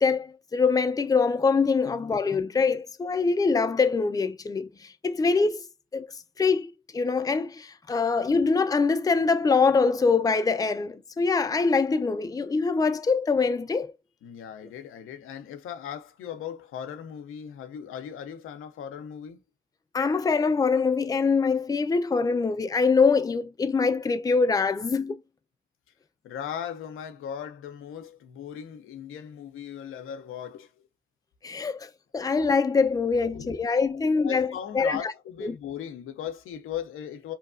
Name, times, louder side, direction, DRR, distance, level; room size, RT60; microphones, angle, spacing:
voice 1, 0.0-5.6 5.9-6.1 6.4-13.9 19.9-25.2 31.4-35.1 35.4-35.5, left 4 dB, 15° left, 0.4 m, -24 dB
voice 2, 14.2-19.4 26.2-30.9 33.3-33.6 34.2-37.3, left 9 dB, 85° left, 0.5 m, -38 dB
2.8 x 2.2 x 2.4 m
supercardioid pair, 55°, 21 cm